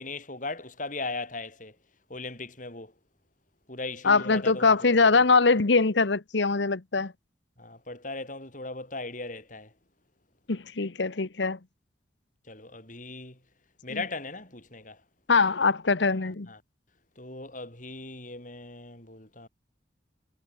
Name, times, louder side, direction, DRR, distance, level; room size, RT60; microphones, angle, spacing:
voice 1, 0.0-1.7 2.1-2.9 3.7-5.2 7.6-9.7 12.5-13.4 13.8-15.0 16.2-16.6 17.2-19.5, left 3 dB, 45° left, 6.1 m, -38 dB
voice 2, 4.0-7.1 10.5-11.6 13.9-14.0 15.3-16.5, left 4 dB, 75° left, 1.1 m, -23 dB
head